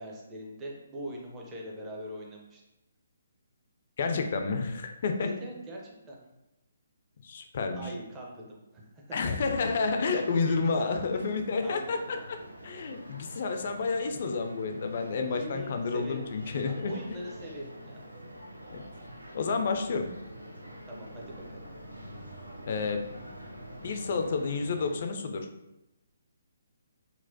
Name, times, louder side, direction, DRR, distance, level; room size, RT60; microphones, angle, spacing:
voice 1, 0.0-2.6 5.2-6.2 7.7-9.7 10.3-11.2 11.6-12.0 15.3-16.2 16.6-18.0 20.9-21.6, equal, 15° right, -2 dB, 0.6 m, -42 dB
voice 2, 4.0-5.3 7.2-7.9 9.1-12.0 12.3-12.4 12.6-16.9 18.7-18.8 19.3-20.1 22.7-23.0 23.8-25.5, left 4 dB, 45° left, 5 dB, 0.4 m, -30 dB
sound 1, 9.4-25.0, equal, 85° right, 0.5 m, -46 dB
4.1 x 2.1 x 2.6 m, 0.94 s
figure-of-eight pair, 135°, 0 cm